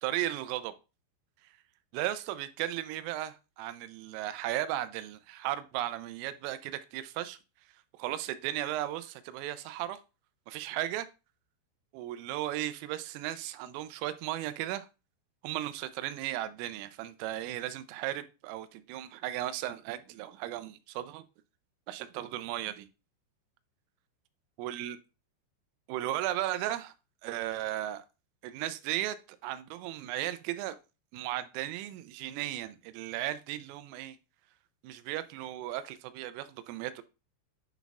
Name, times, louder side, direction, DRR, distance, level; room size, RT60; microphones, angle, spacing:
voice 1, 0.0-0.7 1.4-1.5 1.9-7.4 8.0-10.0 10.5-11.1 11.9-14.9 15.4-21.2 21.9-22.9 24.6-25.0 25.9-26.9 27.2-28.1 28.4-30.8 31.1-34.2 34.8-37.0, right 13 dB, 90° right, 3.2 m, -35 dB
10.0 x 4.0 x 2.3 m
omnidirectional pair, 5.8 m